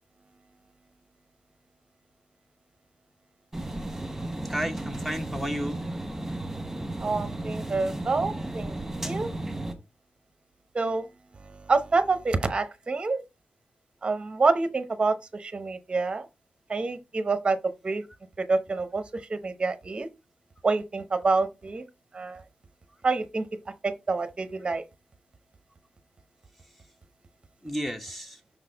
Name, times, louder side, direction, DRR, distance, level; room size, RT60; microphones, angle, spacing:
sound 1, 3.5-9.7, right 1 dB, 10° right, 1.3 m, -34 dB
voice 1, 4.4-5.8 27.6-28.4, equal, 5° left, 0.8 m, -32 dB
voice 2, 7.0-8.7 9.0-9.3 10.7-11.1 11.4-13.2 14.0-16.3 16.7-17.6 17.8-18.0 18.5-19.0 19.3-20.1 20.6-21.8 22.1-22.4 23.0-23.5 23.8-24.8, right 3 dB, 35° right, 0.7 m, -27 dB
6.1 x 4.0 x 3.8 m
wide cardioid pair, 110°, 3 cm